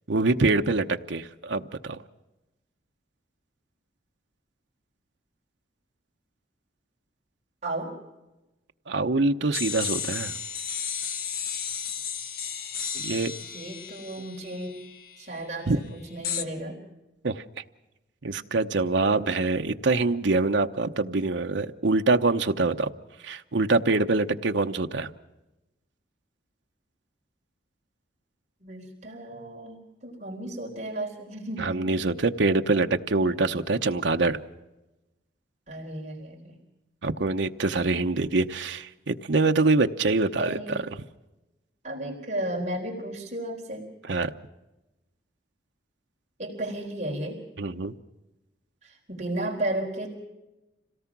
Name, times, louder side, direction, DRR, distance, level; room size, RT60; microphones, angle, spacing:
voice 1, 0.1-2.0 8.9-10.4 12.9-13.3 15.7-15.8 17.2-17.4 18.2-22.9 23.2-25.1 31.6-34.4 37.0-40.9 44.1-44.3 47.6-47.9, right 3 dB, 80° right, 6 dB, 0.9 m, -25 dB
voice 2, 7.6-7.9 13.5-14.8 15.2-16.8 28.6-32.0 35.7-36.6 40.4-40.8 41.8-43.9 46.4-47.4 48.8-50.1, right 1 dB, 40° right, -1 dB, 3.9 m, -34 dB
sound 1, 9.5-15.2 16.2-16.4, left 7 dB, 50° left, 1.1 m, -33 dB
26.5 x 18.0 x 6.0 m, 1.0 s
head